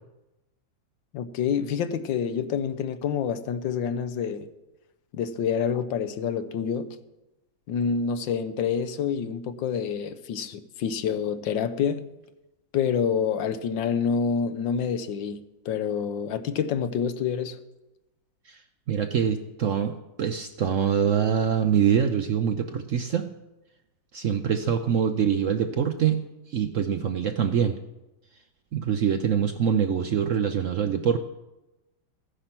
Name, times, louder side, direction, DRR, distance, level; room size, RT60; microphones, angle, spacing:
voice 1, 1.1-4.5 5.1-6.9 7.7-12.0 12.7-17.6, left 7 dB, 80° left, 1.5 m, -27 dB
voice 2, 18.9-23.3 24.1-26.2 26.5-27.8 28.7-31.2, right 8 dB, 65° right, 0.7 m, -24 dB
15.0 x 9.9 x 6.0 m
omnidirectional pair, 2.0 m